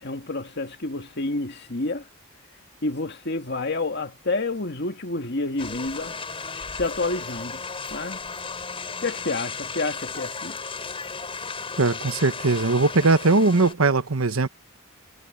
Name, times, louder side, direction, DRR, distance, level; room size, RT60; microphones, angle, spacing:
voice 1, 0.0-2.1 2.8-6.2 6.7-7.6 7.9-8.2 9.0-10.6, left 3 dB, 55° left, 2.0 m, -29 dB
sound 1, 5.6-13.7, left 4 dB, 25° left, 4.3 m, -35 dB
voice 2, 11.8-14.5, right 3 dB, 80° right, 1.1 m, -20 dB
head